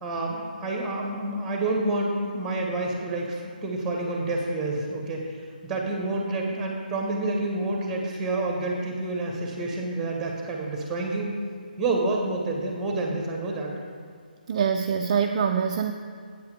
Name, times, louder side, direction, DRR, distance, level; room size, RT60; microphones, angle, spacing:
voice 1, 0.0-5.3 5.6-11.3 11.8-13.7, right 2 dB, 10° right, 0 dB, 1.5 m, -28 dB
voice 2, 14.5-15.9, right 7 dB, 35° right, 5 dB, 0.4 m, -24 dB
8.4 x 8.1 x 5.0 m, 2.1 s
figure-of-eight pair, 145°, 5 cm